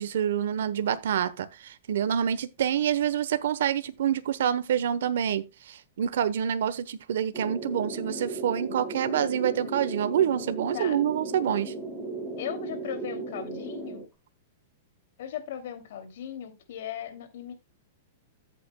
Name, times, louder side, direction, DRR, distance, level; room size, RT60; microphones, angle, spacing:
voice 1, 0.0-11.7, right 9 dB, 75° right, 1.0 m, -27 dB
sound 1, 7.3-14.1, right 2 dB, 5° right, 6.0 m, -36 dB
voice 2, 12.4-14.0 15.2-17.5, left 9 dB, 65° left, 2.7 m, -37 dB
13.5 x 8.3 x 2.3 m
hypercardioid pair, 150°, 0 cm